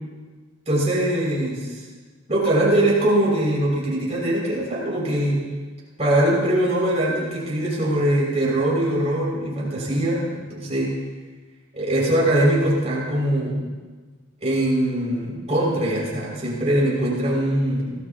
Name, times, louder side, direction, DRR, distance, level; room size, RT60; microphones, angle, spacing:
voice 1, 0.7-1.8 2.3-5.4 6.0-10.9 11.7-13.6 14.4-18.0, right 1 dB, 30° right, -4 dB, 6.3 m, -22 dB
25.5 x 18.5 x 3.0 m, 1.4 s
head